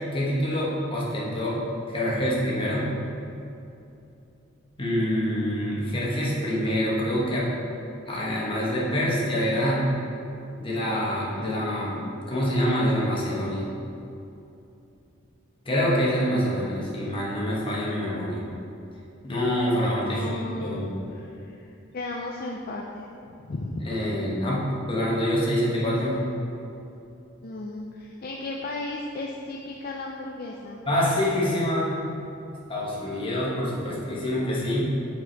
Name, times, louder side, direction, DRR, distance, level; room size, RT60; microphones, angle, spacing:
voice 1, 0.0-1.6 1.9-3.0 4.8-7.5 8.1-9.8 10.6-13.7 15.6-18.5 19.2-21.0 23.8-26.2 30.9-32.0 32.7-34.8, equal, 25° left, -6 dB, 1.3 m, -26 dB
voice 2, 20.0-21.7 21.9-23.1 23.4-23.9 27.4-30.9, left 2 dB, 45° left, -1 dB, 0.4 m, -35 dB
6.5 x 4.9 x 4.6 m, 2.8 s
head